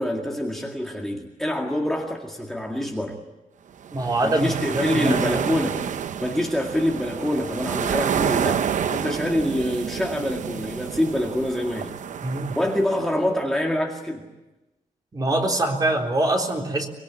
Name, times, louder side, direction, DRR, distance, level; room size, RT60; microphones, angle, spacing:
voice 1, 0.0-3.2 4.2-5.8 6.2-11.9 12.5-14.2, left 1 dB, ahead, 0 dB, 2.1 m, -26 dB
sound 1, 3.8-13.1, right 8 dB, 60° right, 0.8 m, -29 dB
voice 2, 3.9-5.5 12.2-12.6 15.1-16.9, right 2 dB, 25° right, 1 dB, 3.8 m, -24 dB
24.5 x 22.5 x 9.6 m, 1.0 s
wide cardioid pair, 155°, 14 cm